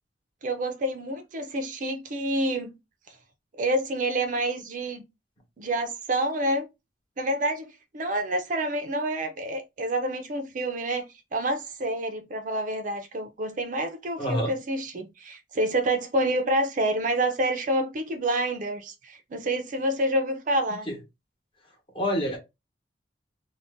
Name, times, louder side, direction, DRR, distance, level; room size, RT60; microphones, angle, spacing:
voice 1, 0.4-2.7 3.1-3.2 3.6-5.0 5.6-6.7 7.2-20.9, right 1 dB, 45° right, 0.5 m, -28 dB
voice 2, 14.2-14.5 20.9-21.0 21.9-22.4, equal, 30° left, 1.0 m, -26 dB
2.5 x 2.2 x 3.4 m
head